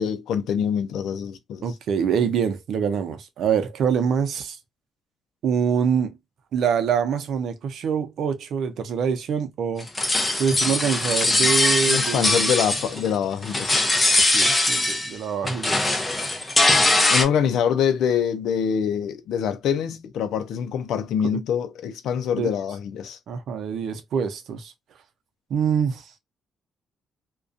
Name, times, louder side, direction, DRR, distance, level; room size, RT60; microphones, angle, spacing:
voice 1, 0.0-1.6 11.9-13.9 17.1-23.2, left 8 dB, 80° left, 0.4 m, -25 dB
voice 2, 1.6-4.6 5.4-6.2 6.5-9.9 10.4-12.5 14.2-15.9 22.3-22.5 23.3-24.7 25.5-26.1, right 7 dB, 70° right, 0.5 m, -25 dB
sound 1, 9.8-13.2 13.4-15.2 15.4-17.2, left 2 dB, 20° left, 0.6 m, -21 dB
2.4 x 2.2 x 2.5 m
cardioid pair, 90°, 0 cm